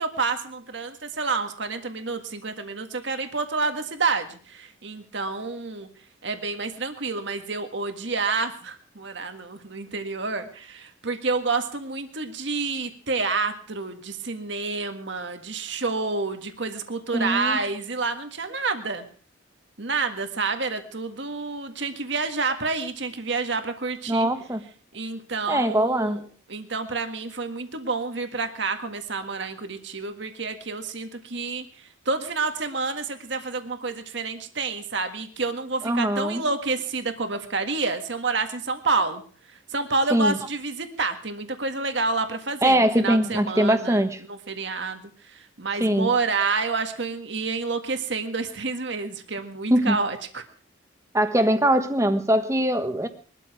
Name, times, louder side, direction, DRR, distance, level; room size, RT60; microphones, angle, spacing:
voice 1, 0.0-5.9 6.2-19.0 19.8-24.3 24.9-26.2 26.5-39.2 39.7-44.0 44.3-50.4, right 4 dB, 65° right, 7 dB, 1.8 m, -29 dB
voice 2, 17.1-17.6 24.1-24.6 25.5-26.2 35.8-36.4 40.1-40.4 42.6-44.2 45.8-46.1 49.7-50.0 51.1-53.1, right 1 dB, 15° right, 8 dB, 1.4 m, -22 dB
22.0 x 13.0 x 5.0 m, 0.43 s
head